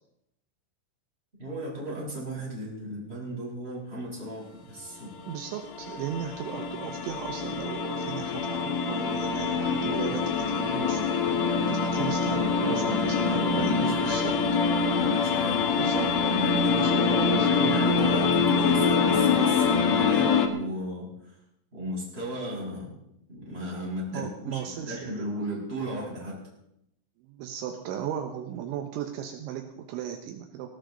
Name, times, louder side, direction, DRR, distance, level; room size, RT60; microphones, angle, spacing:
voice 1, 1.4-5.2 12.2-14.5 14.9-15.7 16.2-21.4 21.7-22.9 23.3-26.4, equal, 10° right, -4 dB, 6.8 m, -35 dB
sound 1, 5.1-20.5, left 5 dB, 85° left, 1.5 m, -25 dB
voice 2, 5.3-14.4 15.8-16.2 16.8-17.6 24.1-25.3 27.2-30.7, right 9 dB, 75° right, 5 dB, 3.4 m, -36 dB
18.5 x 18.0 x 4.0 m, 0.79 s
omnidirectional pair, 5.6 m